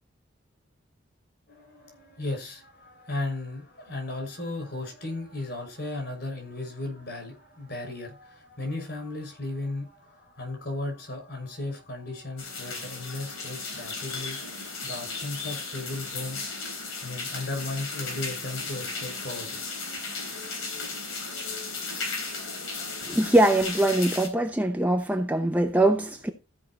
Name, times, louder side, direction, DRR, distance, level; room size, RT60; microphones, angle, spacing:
voice 1, 1.5-14.5 14.8-16.4 17.0-20.2, left 2 dB, 55° left, 6.1 m, -36 dB
sound 1, 12.4-24.3, left 4 dB, 85° left, 3.9 m, -35 dB
voice 2, 23.0-26.3, right 1 dB, 10° right, 0.7 m, -22 dB
14.5 x 5.6 x 4.2 m
head